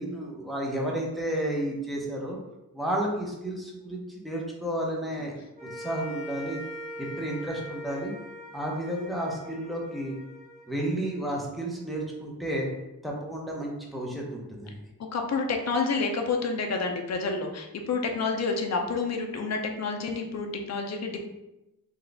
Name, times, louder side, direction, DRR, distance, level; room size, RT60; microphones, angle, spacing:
voice 1, 0.0-2.4 2.7-5.3 5.7-6.6 7.0-8.1 8.5-10.1 10.7-12.7 13.0-14.8, right 1 dB, ahead, -2 dB, 0.6 m, -32 dB
sound 1, 5.6-12.0, equal, 20° right, 1.1 m, -42 dB
voice 2, 15.1-21.2, left 4 dB, 45° left, 3 dB, 0.5 m, -29 dB
3.9 x 2.3 x 3.3 m, 0.94 s
wide cardioid pair, 155°, 37 cm